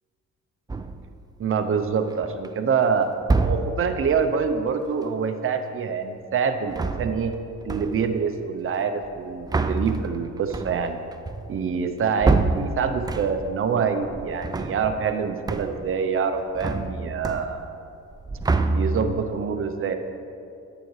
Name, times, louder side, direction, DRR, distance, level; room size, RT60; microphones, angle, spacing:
sound 1, 0.7-1.2 1.9-2.5 3.2-4.0 6.6-7.4 7.7-8.2 9.0-13.6 14.0-15.2 15.5-16.0 16.2-17.8 18.1-19.3, right 3 dB, 15° right, 0.4 m, -27 dB
voice 1, 1.4-3.1 3.4-7.3 7.6-11.0 11.5-17.6 18.7-20.0, right 6 dB, 45° right, 7 dB, 0.7 m, -25 dB
9.8 x 9.1 x 3.2 m, 2.6 s
cardioid pair, 90°, 30 cm